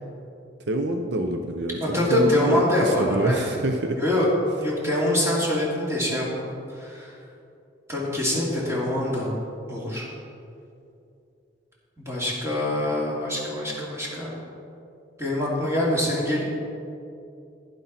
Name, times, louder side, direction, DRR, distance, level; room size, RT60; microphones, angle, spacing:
voice 1, 0.7-4.0, right 1 dB, 70° right, 5 dB, 0.6 m, -27 dB
voice 2, 1.8-3.5 4.0-4.3 4.6-7.1 7.9-9.3 9.7-10.1 12.0-14.3 15.2-16.4, left 1 dB, 15° right, -5 dB, 2.6 m, -24 dB
11.5 x 11.0 x 4.2 m, 2.6 s
head